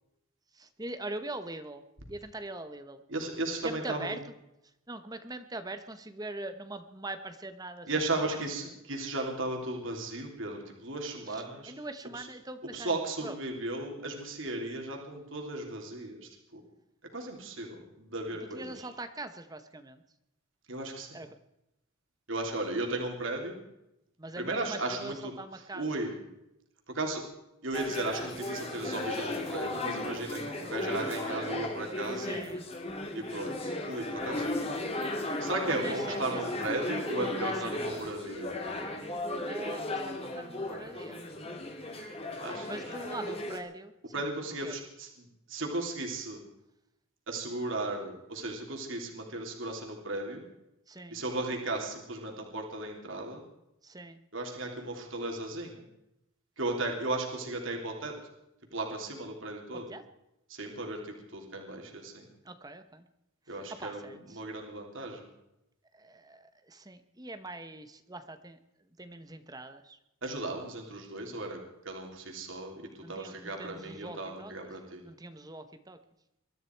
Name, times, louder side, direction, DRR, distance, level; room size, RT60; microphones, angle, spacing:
voice 1, 0.5-1.8 2.1-3.0 3.6-4.3 4.9-8.4 11.2-13.4 18.4-20.0 21.1-21.3 24.2-26.0 32.1-32.6 34.5-34.8 35.8-36.4 37.4-38.0 39.4-41.2 42.7-44.3 44.6-44.8 50.9-51.2 53.8-54.2 59.7-60.0 62.4-63.1 63.5-64.4 65.9-68.6 69.0-70.0 73.0-74.5 75.0-76.0, right 2 dB, 20° right, 9 dB, 1.0 m, -43 dB
voice 2, 3.1-4.1 7.9-11.7 12.7-16.6 17.1-18.9 20.7-21.2 22.3-23.6 24.4-25.1 25.8-26.2 26.9-27.2 27.6-32.4 33.1-34.5 35.4-38.9 42.4-42.8 44.1-46.4 47.3-50.4 51.1-53.4 54.3-55.8 56.6-58.1 58.7-59.9 60.5-62.2 63.5-65.3 70.2-71.6 71.8-75.0, right 2 dB, 60° right, 2 dB, 3.2 m, -35 dB
sound 1, 27.7-43.6, left 2 dB, 30° left, 2.4 m, -35 dB
23.0 x 13.5 x 4.6 m, 0.86 s
head